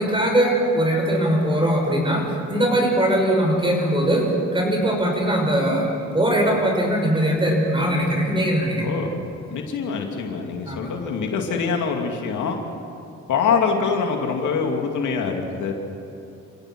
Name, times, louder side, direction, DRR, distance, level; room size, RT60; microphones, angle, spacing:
voice 1, 0.0-2.2 2.5-4.2 4.5-8.8 10.7-10.8, right 1 dB, 15° right, 1 dB, 6.4 m, -20 dB
voice 2, 8.8-9.1 9.5-12.6 13.3-15.7, left 5 dB, 75° left, 2 dB, 2.7 m, -24 dB
28.0 x 16.5 x 6.2 m, 2.8 s
cardioid pair, 90°, 30 cm